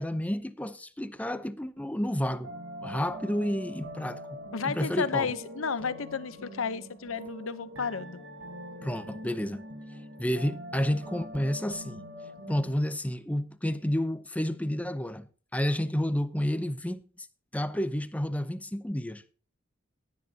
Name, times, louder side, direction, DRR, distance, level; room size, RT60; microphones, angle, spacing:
voice 1, 0.0-2.5 2.8-4.4 4.6-5.3 8.8-9.6 10.2-12.0 12.5-15.3 15.5-17.3 17.5-19.3, equal, 5° left, 0.7 m, -30 dB
sound 1, 2.2-12.7, equal, 70° right, 4.0 m, -43 dB
voice 2, 4.5-8.2, left 5 dB, 80° left, 0.8 m, -32 dB
18.0 x 9.5 x 2.8 m
head